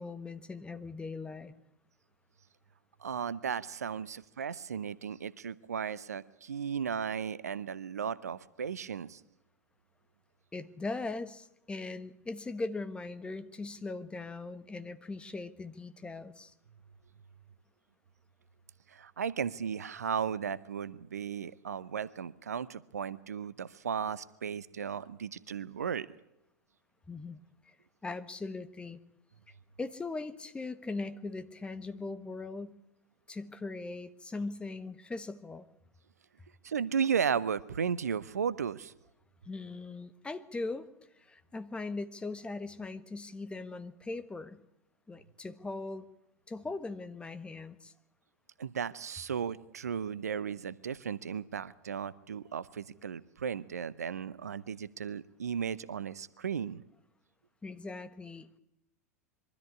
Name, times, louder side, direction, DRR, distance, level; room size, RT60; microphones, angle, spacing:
voice 1, 0.0-1.5 10.5-16.5 27.1-27.4 27.6-27.7 28.0-29.0 29.8-32.7 33.3-35.6 39.4-40.9 41.2-44.6 45.1-46.1 46.5-47.9 57.6-58.6, left 3 dB, 10° left, 12 dB, 1.4 m, -40 dB
voice 2, 3.0-9.2 18.9-26.1 36.6-38.9 48.6-56.8, right 7 dB, 75° right, 18 dB, 0.8 m, -35 dB
23.0 x 13.5 x 9.8 m, 0.85 s
figure-of-eight pair, 90°, 8 cm